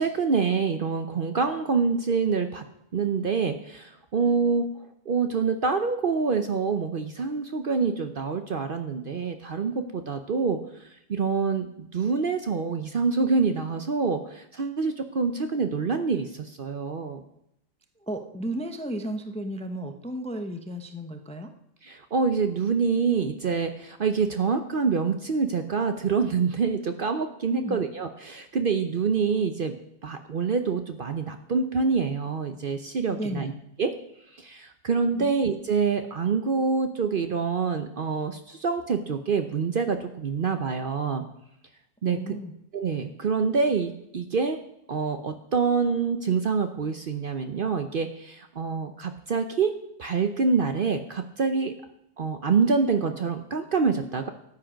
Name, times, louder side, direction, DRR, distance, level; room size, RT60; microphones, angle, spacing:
voice 1, 0.0-2.6 2.9-4.7 5.1-10.6 11.1-17.2 21.8-29.7 30.0-33.5 33.8-33.9 34.4-41.2 42.0-42.3 42.7-44.6 44.9-51.7 52.2-54.3, right 5 dB, 50° right, 7 dB, 0.8 m, -26 dB
voice 2, 18.0-21.5 27.5-27.8 33.1-33.5 35.1-35.3 42.1-42.5, equal, 5° left, 6 dB, 0.6 m, -33 dB
13.5 x 8.7 x 5.1 m, 0.78 s
omnidirectional pair, 1.4 m